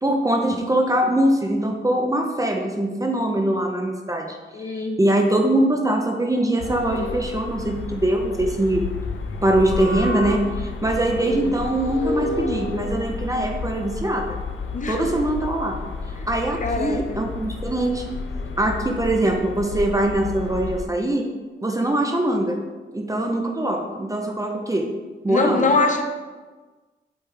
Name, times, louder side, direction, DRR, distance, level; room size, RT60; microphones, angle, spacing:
voice 1, 0.0-8.8 9.4-14.4 14.9-15.8 16.3-18.1 18.6-21.3 21.6-22.6 22.9-24.9 25.2-25.7, right 1 dB, 15° right, 2 dB, 0.6 m, -22 dB
voice 2, 4.5-5.0 11.3-11.6 14.7-15.2 16.2-16.3 16.6-17.2 25.3-26.0, left 3 dB, 40° left, 5 dB, 0.7 m, -24 dB
sound 1, 6.6-20.8, left 4 dB, 85° left, 0.6 m, -31 dB
7.9 x 3.3 x 4.8 m, 1.3 s
wide cardioid pair, 145°, 20 cm